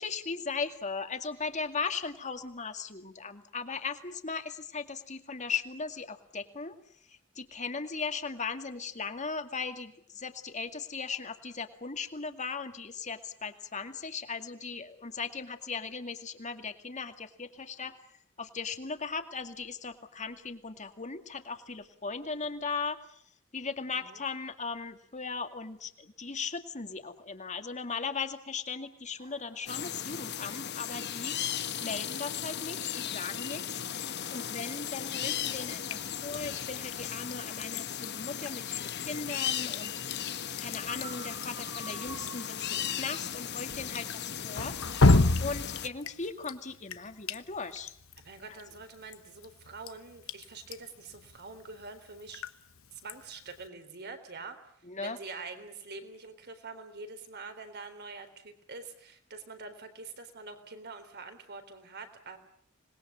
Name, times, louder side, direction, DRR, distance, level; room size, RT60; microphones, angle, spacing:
voice 1, 0.0-6.7 7.4-18.0 18.4-23.2 23.5-40.2 40.6-45.1 45.4-47.9 54.8-55.2, left 4 dB, 35° left, 8 dB, 2.3 m, -38 dB
sound 1, 29.2-44.1 44.5-45.4, right 4 dB, 25° right, 2.5 m, -52 dB
sound 2, 29.7-45.9, left 9 dB, 55° left, 1.2 m, -36 dB
Drip, 35.4-53.7, left 2 dB, 75° left, 1.2 m, -33 dB
voice 2, 48.2-52.4 52.9-54.6 55.0-62.4, right 4 dB, 55° right, 8 dB, 3.9 m, -45 dB
26.5 x 21.0 x 8.7 m, 0.64 s
head